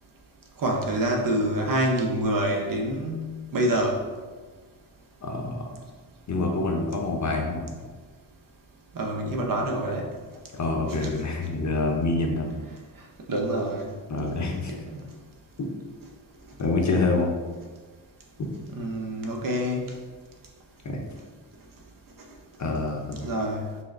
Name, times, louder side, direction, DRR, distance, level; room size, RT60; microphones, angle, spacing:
voice 1, 0.6-4.0 8.9-10.1 11.0-11.1 13.3-13.9 14.7-14.8 18.7-19.9 23.2-23.7, right 1 dB, 50° right, 2 dB, 0.7 m, -26 dB
voice 2, 5.2-5.7 6.3-7.8 10.5-12.5 14.1-14.7 15.6-15.7 16.6-17.3 18.4-18.5 20.8-21.0 22.6-23.2, left 3 dB, 40° left, 1 dB, 0.6 m, -26 dB
5.7 x 2.1 x 2.4 m, 1.4 s
cardioid pair, 80°, 44 cm